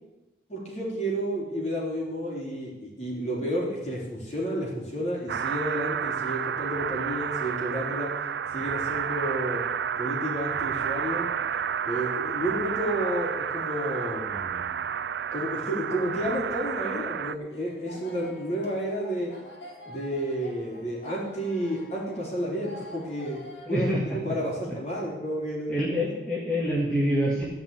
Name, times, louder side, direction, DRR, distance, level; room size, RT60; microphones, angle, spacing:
voice 1, 0.5-8.1 8.5-9.6 10.0-11.3 11.9-14.8 15.3-19.3 19.9-25.9, equal, 35° left, -4 dB, 3.7 m, -31 dB
Horror Chase, 5.3-17.3, right 7 dB, 70° right, 0.4 m, -30 dB
sound 1, 17.5-23.7, left 1 dB, 85° left, 2.4 m, -47 dB
voice 2, 23.7-24.2 25.7-27.5, equal, 5° left, -6 dB, 2.0 m, -26 dB
14.0 x 5.5 x 9.0 m, 1.1 s
head